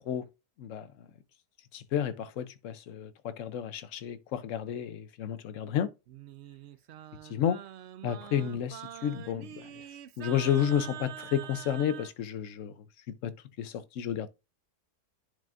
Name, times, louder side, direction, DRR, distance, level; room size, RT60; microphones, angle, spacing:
voice 1, 1.7-5.9 7.3-7.6 8.0-9.7 10.2-12.7 13.2-14.3, left 9 dB, 65° left, 0.9 m, -31 dB
Singing, 6.1-12.1, right 11 dB, 80° right, 0.6 m, -45 dB
10.5 x 5.3 x 2.5 m
omnidirectional pair, 1.7 m